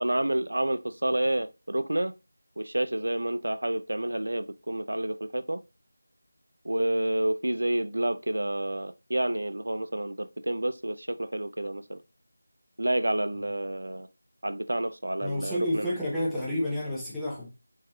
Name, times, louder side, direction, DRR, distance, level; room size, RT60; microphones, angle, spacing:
voice 1, 0.0-2.1 2.6-5.6 6.6-12.0 12.8-14.1 14.4-15.9, right 1 dB, 80° right, 0.3 m, -29 dB
voice 2, 15.2-17.5, left 1 dB, ahead, 0.6 m, -30 dB
4.6 x 2.8 x 2.2 m
figure-of-eight pair, 170°, 0 cm